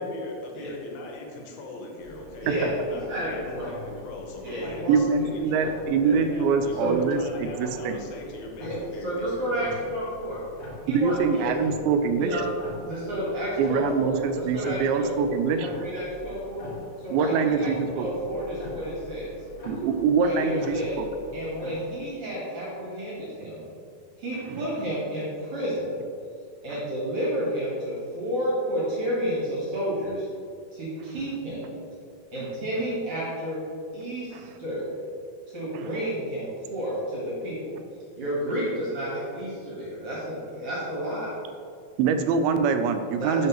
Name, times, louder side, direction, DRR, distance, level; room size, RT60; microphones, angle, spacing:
voice 1, 0.0-5.7 6.1-10.0, left 2 dB, 80° left, 0 dB, 2.6 m, -40 dB
sound 1, 2.0-21.8, left 1 dB, 50° left, 1.5 m, -45 dB
voice 2, 2.4-3.7 4.4-5.7 6.0-6.2 6.8-7.0 8.6-10.4 10.9-11.7 12.2-12.5 12.7-16.7 17.0-19.3 20.2-21.0 21.3-23.7 24.2-25.9 26.6-30.3 30.7-31.6 32.3-33.6 33.9-34.9 35.5-37.8 38.2-41.3 43.2-43.5, equal, 55° right, -7 dB, 1.8 m, -31 dB
voice 3, 4.9-8.0 10.9-12.4 13.6-15.7 17.1-18.1 19.6-21.1 24.5-24.6 26.7-26.8 34.3-34.4 35.7-35.9 42.0-43.5, right 5 dB, 85° right, 8 dB, 2.4 m, -24 dB
11.0 x 3.8 x 3.0 m, 2.4 s
omnidirectional pair, 4.3 m